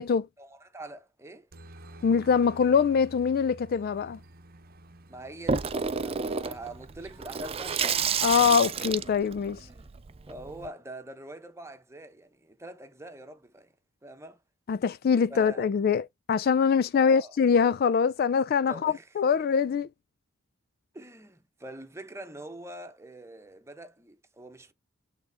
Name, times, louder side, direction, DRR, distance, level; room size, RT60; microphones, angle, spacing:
voice 1, 0.4-1.5 5.1-8.2 9.5-9.9 10.3-13.7 14.0-14.4 15.3-15.7 16.9-17.3 18.6-19.1 19.3-19.4 20.9-24.7, right 1 dB, 15° right, 0.9 m, -44 dB
Aircraft, 1.5-8.3, right 2 dB, 45° right, 0.8 m, -50 dB
voice 2, 2.0-4.2 8.2-9.6 14.7-19.9, left 6 dB, 45° left, 0.3 m, -24 dB
Water tap faucet / Sink (filling or washing), 5.5-10.7, right 6 dB, 30° right, 0.5 m, -30 dB
8.3 x 3.7 x 3.4 m
head